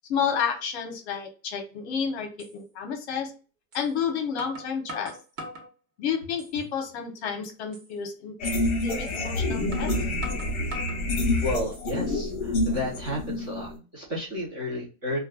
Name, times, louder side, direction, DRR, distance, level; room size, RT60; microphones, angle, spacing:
voice 1, 0.1-3.3 3.7-5.1 6.0-8.5 8.8-9.9, left 7 dB, 50° left, 3 dB, 0.8 m, -30 dB
sound 1, 1.8-1.9 2.4-2.5 3.7-3.9 4.4-5.7 6.2-6.8 7.1-7.2 7.7-7.9 9.1-9.2 9.7-11.0 11.5-12.1, right 1 dB, 65° right, 1.1 m, -41 dB
sound 2, 8.4-13.8, left 2 dB, 30° left, 0.4 m, -27 dB
voice 2, 11.4-15.2, left 1 dB, 20° right, -4 dB, 0.6 m, -32 dB
2.2 x 2.2 x 3.4 m, 0.34 s
supercardioid pair, 160°, 43 cm